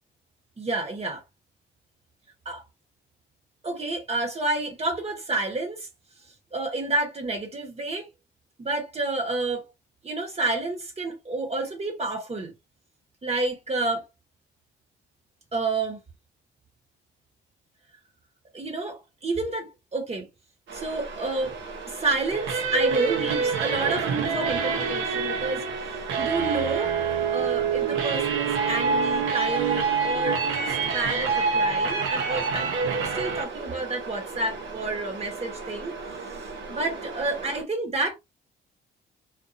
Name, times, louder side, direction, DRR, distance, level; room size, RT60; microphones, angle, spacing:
voice 1, 0.6-1.2 2.4-2.6 3.6-5.9 6.5-8.1 8.6-9.7 10.0-12.5 13.2-14.1 15.5-16.0 18.5-20.3 20.7-21.6 21.9-25.6 26.2-26.9 27.3-32.7 33.0-35.9 36.7-38.2, right 2 dB, 30° right, 1.2 m, -29 dB
sound 1, 20.7-37.6, right 4 dB, 65° right, 1.1 m, -38 dB
sound 2, 22.3-33.4, right 5 dB, 85° right, 0.8 m, -26 dB
2.6 x 2.5 x 2.6 m
cardioid pair, 90°, 20 cm